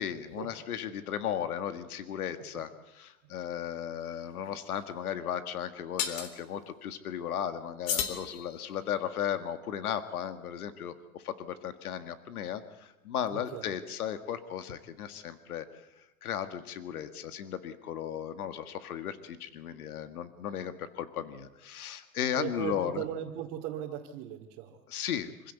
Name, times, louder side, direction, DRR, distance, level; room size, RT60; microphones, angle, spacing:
voice 1, 0.0-2.7 3.0-15.7 16.2-23.0 24.9-25.5, left 9 dB, 85° left, 10 dB, 1.9 m, -35 dB
sound 1, 4.0-4.1 6.0-6.3 7.9-8.9, left 8 dB, 65° left, 3.9 m, -34 dB
voice 2, 13.3-13.7 22.3-24.8, right 11 dB, 35° right, -2 dB, 2.5 m, -38 dB
26.0 x 16.5 x 8.2 m, 1.0 s
supercardioid pair, 145°, 43 cm